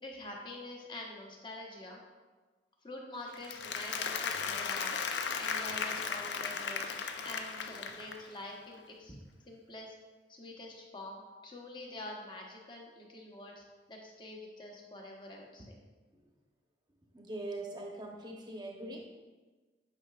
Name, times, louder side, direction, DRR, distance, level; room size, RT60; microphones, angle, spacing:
voice 1, 0.0-2.0 2.8-9.2 9.5-9.9 10.3-15.7, left 1 dB, 25° left, 0 dB, 1.0 m, -46 dB
Applause, 3.3-8.4, left 6 dB, 70° left, 0.5 m, -36 dB
voice 2, 17.1-19.1, right 2 dB, 25° right, 1 dB, 0.8 m, -42 dB
9.0 x 5.7 x 2.4 m, 1.3 s
head